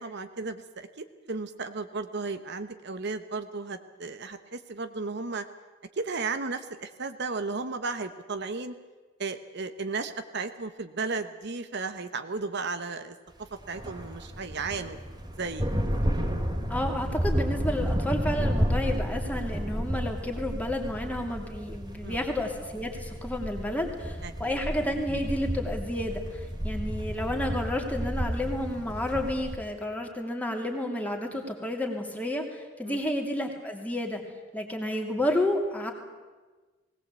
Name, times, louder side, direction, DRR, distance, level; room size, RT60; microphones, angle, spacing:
voice 1, 0.0-5.4 6.0-8.7 9.2-13.1 13.7-15.0 15.4-15.7 22.0-22.2 24.2-24.6 32.8-33.0, right 4 dB, 60° right, 9 dB, 1.1 m, -34 dB
sound 1, 13.5-29.6, equal, 20° right, 2.5 m, -31 dB
voice 2, 16.7-34.2 34.5-35.9, left 1 dB, 10° left, 2 dB, 2.8 m, -31 dB
19.5 x 18.5 x 8.2 m, 1.3 s
head